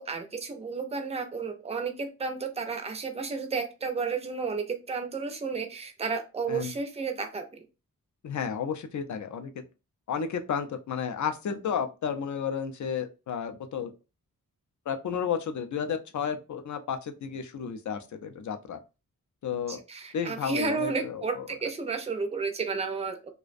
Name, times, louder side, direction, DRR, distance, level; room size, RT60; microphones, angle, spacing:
voice 1, 0.0-7.6 19.7-23.3, right 4 dB, 20° right, 5 dB, 0.4 m, -32 dB
voice 2, 8.2-9.5 10.1-13.9 14.9-18.8 19.4-19.8 20.1-21.4, left 7 dB, 60° left, 7 dB, 0.4 m, -32 dB
2.4 x 2.1 x 2.4 m, 0.29 s
wide cardioid pair, 130°, 34 cm